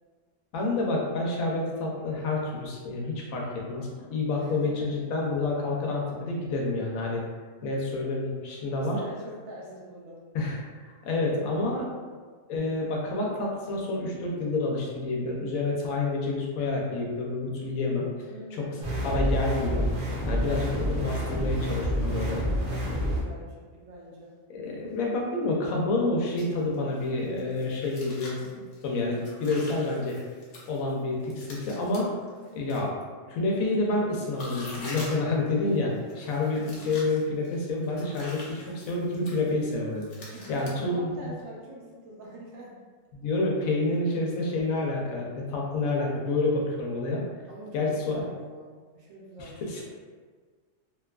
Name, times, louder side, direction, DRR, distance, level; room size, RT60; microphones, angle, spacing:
voice 1, 0.5-7.2 7.6-9.0 10.3-11.8 12.5-18.0 18.5-18.6 19.0-19.9 20.2-22.4 24.5-30.2 30.6-32.1 32.5-32.9 33.3-41.3 43.1-47.2 47.7-48.2 49.4-49.8, left 2 dB, 85° left, -2 dB, 1.0 m, -28 dB
voice 2, 4.4-4.9 8.7-10.2 11.1-12.0 18.2-18.9 22.2-24.4 36.6-37.0 40.3-42.7 43.9-44.0 47.5-49.8, right 1 dB, 80° right, -4 dB, 1.1 m, -44 dB
sound 1, 18.8-23.2, equal, 50° right, 0.8 m, -28 dB
sound 2, 26.4-32.9 33.6-40.8, left 1 dB, 65° left, 1.0 m, -45 dB
2.9 x 2.2 x 2.3 m, 1.5 s
omnidirectional pair, 1.4 m